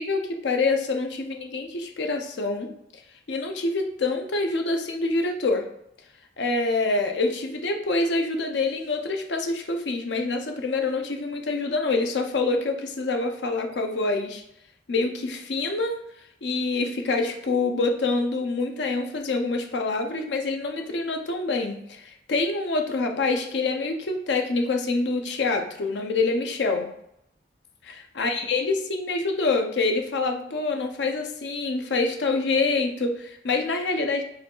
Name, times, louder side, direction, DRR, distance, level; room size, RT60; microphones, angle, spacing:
voice 1, 0.0-3.0 3.3-5.7 6.4-14.4 14.9-16.0 16.4-26.9 27.8-34.2, left 3 dB, 70° left, 4 dB, 0.6 m, -26 dB
4.8 x 2.3 x 4.4 m, 0.77 s
head